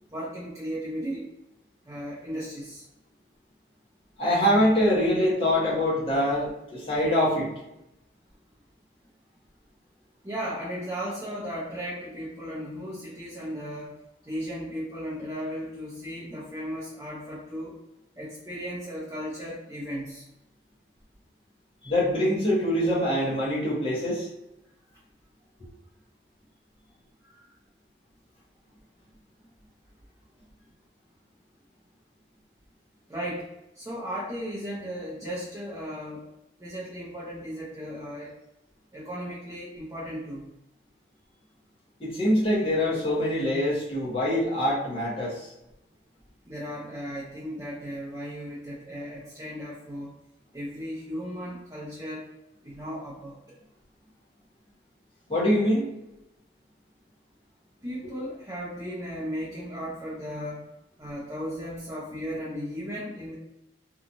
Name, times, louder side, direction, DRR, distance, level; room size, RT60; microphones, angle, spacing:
voice 1, 0.1-1.3 1.8-2.8 10.2-13.9 14.2-17.7 18.2-20.2 27.2-27.4 33.1-33.5 33.7-36.2 36.6-38.3 38.9-40.5 46.4-50.1 50.5-52.3 52.6-53.3 57.8-60.7 61.0-63.3, equal, 15° right, -8 dB, 0.6 m, -36 dB
voice 2, 4.2-7.5 21.8-24.3 42.0-45.5 55.3-55.9, left 1 dB, 30° left, -7 dB, 0.9 m, -24 dB
2.9 x 2.3 x 2.5 m, 0.90 s
head